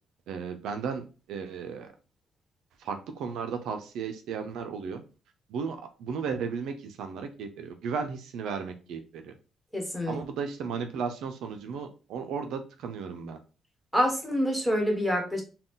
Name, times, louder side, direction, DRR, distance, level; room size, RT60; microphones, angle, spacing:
voice 1, 0.3-1.9 2.8-5.0 5.5-9.3 10.1-13.4, right 6 dB, 80° right, 6 dB, 0.5 m, -35 dB
voice 2, 9.7-10.2 13.9-15.4, equal, ahead, 1 dB, 1.5 m, -26 dB
3.8 x 2.3 x 3.8 m, 0.33 s
cardioid pair, 90°, 0 cm